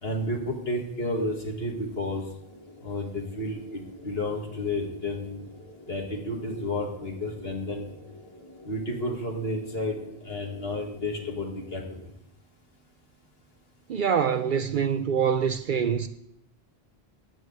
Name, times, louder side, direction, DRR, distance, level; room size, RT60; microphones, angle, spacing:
voice 1, 0.0-2.2 2.8-5.4 5.9-7.9 8.7-10.0 10.2-11.8, left 1 dB, 70° left, 2.3 m, -31 dB
sound 1, 2.4-12.0, left 1 dB, 25° left, 1.7 m, -49 dB
voice 2, 13.9-16.1, right 7 dB, 60° right, 0.7 m, -25 dB
9.8 x 6.4 x 7.9 m
omnidirectional pair, 1.0 m